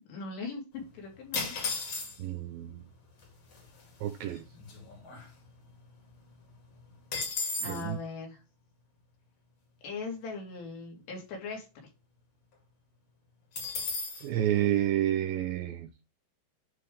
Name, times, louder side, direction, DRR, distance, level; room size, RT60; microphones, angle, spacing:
voice 1, 0.1-1.6 7.6-8.4 9.8-11.9, left 4 dB, 90° left, 4.5 m, -40 dB
sound 1, 1.3-2.4 3.2-3.3 3.5-3.8 4.3-5.8 6.1-6.2 6.5-7.9 13.5-14.3, left 3 dB, 45° left, 3.1 m, -35 dB
voice 2, 2.2-2.8 4.0-4.4 7.6-8.0 14.2-15.9, right 12 dB, 80° right, 2.1 m, -29 dB
11.5 x 3.8 x 3.2 m
omnidirectional pair, 4.8 m